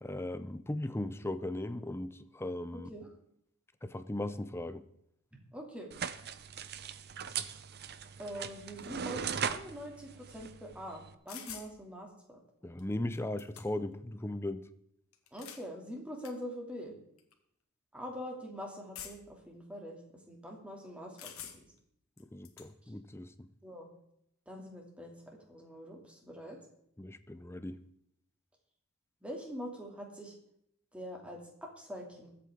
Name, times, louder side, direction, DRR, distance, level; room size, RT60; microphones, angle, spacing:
voice 1, 0.0-2.9 3.8-4.8 12.6-14.6 22.3-23.5 27.0-27.8, left 1 dB, 10° left, 0.6 m, -38 dB
voice 2, 2.7-3.1 5.5-5.9 8.2-12.4 15.3-16.9 17.9-20.0 20.3-21.3 23.6-23.9 24.5-26.6 29.2-30.3 30.9-32.3, equal, 5° right, 2.6 m, -44 dB
sound 1, 5.9-11.1, right 7 dB, 45° right, 0.7 m, -39 dB
sound 2, 11.3-11.7 12.8-12.9 13.1-13.9 15.1-15.7 16.2-16.3 17.2-17.3 18.9-19.4 21.2-21.8 22.2-22.7, left 9 dB, 65° left, 1.7 m, -47 dB
22.0 x 8.5 x 3.7 m
head